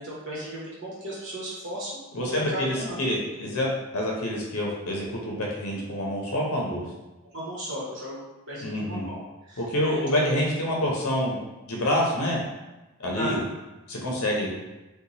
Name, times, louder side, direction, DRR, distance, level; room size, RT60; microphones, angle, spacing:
voice 1, 0.0-3.0 7.2-9.2 9.5-10.3 13.2-13.4, equal, 55° right, -7 dB, 1.2 m, -35 dB
voice 2, 2.1-6.8 8.6-9.1 9.6-11.4 11.7-12.4 13.0-13.4 13.9-14.5, left 1 dB, 80° left, -2 dB, 0.7 m, -27 dB
2.9 x 2.3 x 3.9 m, 1.1 s
head